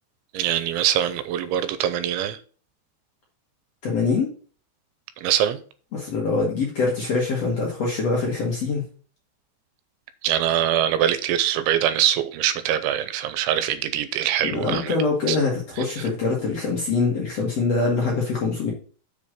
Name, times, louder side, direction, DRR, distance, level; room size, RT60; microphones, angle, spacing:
voice 1, 0.3-2.4 5.2-5.6 10.2-15.0 15.3-15.4, right 11 dB, 90° right, 12 dB, 3.0 m, -23 dB
voice 2, 3.8-4.3 5.9-8.8 14.4-18.7, left 4 dB, 50° left, -3 dB, 2.0 m, -24 dB
6.7 x 5.4 x 6.3 m, 0.41 s
omnidirectional pair, 5.4 m